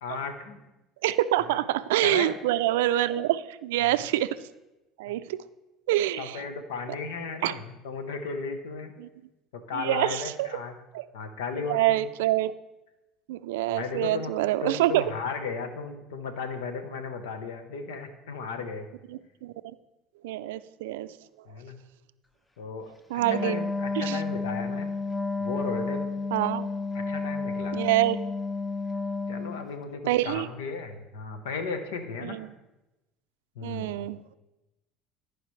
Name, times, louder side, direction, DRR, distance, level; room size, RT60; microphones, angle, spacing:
voice 1, 0.0-0.6 1.4-1.6 2.0-2.3 6.2-8.9 9.5-10.8 11.1-12.1 13.7-14.3 14.6-18.9 21.5-21.8 22.6-22.9 23.3-24.9 25.4-26.1 26.9-27.8 29.3-32.4 33.5-34.0, left 4 dB, 90° left, 7 dB, 1.0 m, -35 dB
voice 2, 1.0-4.4 5.0-5.4 5.9-6.4 7.4-7.5 9.0-9.1 9.8-10.5 10.9-11.0 11.7-12.5 13.3-15.0 19.4-19.5 20.2-21.1 23.1-23.6 24.0-24.2 26.3-26.7 27.7-28.2 30.1-30.5 32.2-32.5 33.6-34.3, right 14 dB, 85° right, 14 dB, 0.3 m, -26 dB
Wind instrument woodwind instrument, 23.2-29.7, left 3 dB, 10° left, 0.5 m, -31 dB
14.5 x 4.9 x 3.2 m, 0.98 s
supercardioid pair, 90°, 0 cm